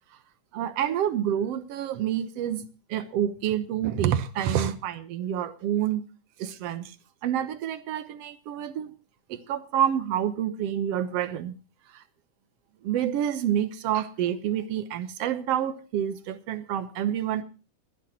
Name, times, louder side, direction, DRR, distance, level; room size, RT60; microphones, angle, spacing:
voice 1, 0.5-6.1 6.4-6.9 7.2-8.9 9.3-11.6 11.9-12.0 12.8-17.4, right 10 dB, 65° right, 1.8 m, -28 dB
28.0 x 10.0 x 2.9 m
omnidirectional pair, 3.6 m